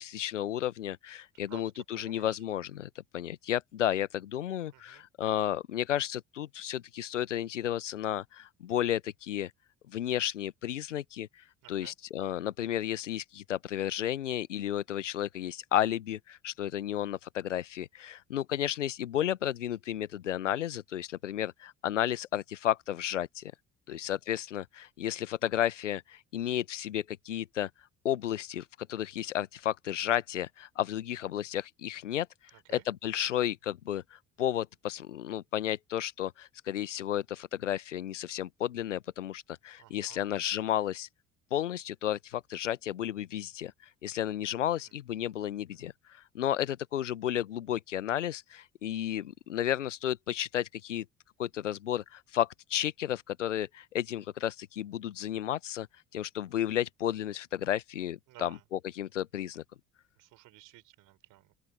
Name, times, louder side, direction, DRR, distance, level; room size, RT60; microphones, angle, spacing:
voice 1, 0.0-9.5 9.9-11.3 11.7-23.5 23.9-27.7 28.0-32.3 32.9-41.1 41.5-43.7 44.0-45.9 46.3-51.0 51.4-55.9 56.1-59.6, left 11 dB, 80° left, 1.0 m, -32 dB
voice 2, 1.5-2.4 4.7-5.0 11.6-12.0 23.9-24.2 32.5-32.9 39.8-40.3 44.6-44.9 45.7-45.8 58.3-58.6 60.2-61.5, right 17 dB, 55° right, 4.2 m, -54 dB
open air
figure-of-eight pair, 55°, 36 cm